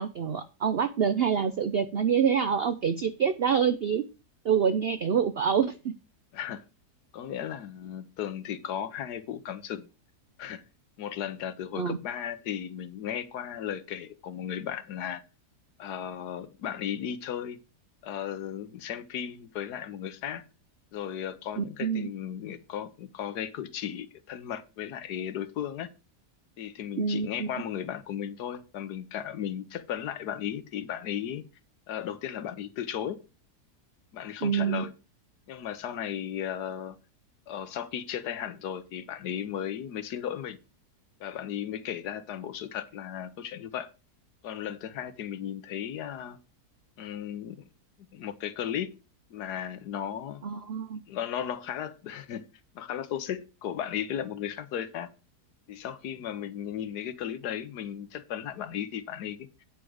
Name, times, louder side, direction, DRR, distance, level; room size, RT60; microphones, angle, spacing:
voice 1, 0.0-4.0 4.4-5.9 11.8-12.0 21.6-22.1 27.0-27.5 34.4-34.9 50.4-51.0, right 7 dB, 70° right, 0.5 m, -26 dB
voice 2, 6.3-6.6 7.1-9.9 10.4-10.6 11.0-15.2 15.8-17.6 18.0-20.5 20.9-25.9 26.6-31.4 31.9-33.2 34.1-34.9 35.5-37.0 37.5-40.6 41.2-43.9 44.4-46.4 47.0-47.6 48.1-48.9 49.3-50.4 51.1-52.4 52.7-55.1 55.7-59.6, left 9 dB, 75° left, 1.4 m, -35 dB
9.1 x 4.8 x 6.2 m
omnidirectional pair, 1.7 m